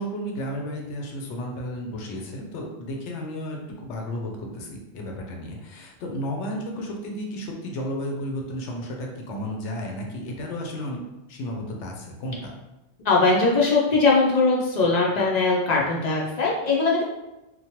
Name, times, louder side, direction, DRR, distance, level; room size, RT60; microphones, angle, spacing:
voice 1, 0.0-11.0 11.3-12.3, equal, 85° left, 0 dB, 0.9 m, -33 dB
voice 2, 13.0-17.0, left 3 dB, 55° left, -4 dB, 0.5 m, -20 dB
3.0 x 2.1 x 2.8 m, 0.98 s
omnidirectional pair, 1.1 m